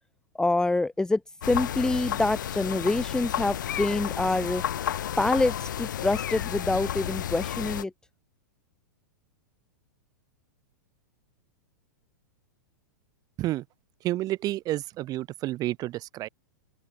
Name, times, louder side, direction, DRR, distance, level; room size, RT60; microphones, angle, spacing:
voice 1, 0.3-1.2 1.5-4.6 5.2-7.9, left 2 dB, 5° left, 1.6 m, -26 dB
sound 1, 1.4-7.8, left 10 dB, 70° left, 6.9 m, -32 dB
voice 2, 14.0-16.3, right 16 dB, 35° right, 6.7 m, -30 dB
open air
hypercardioid pair, 110°, 11 cm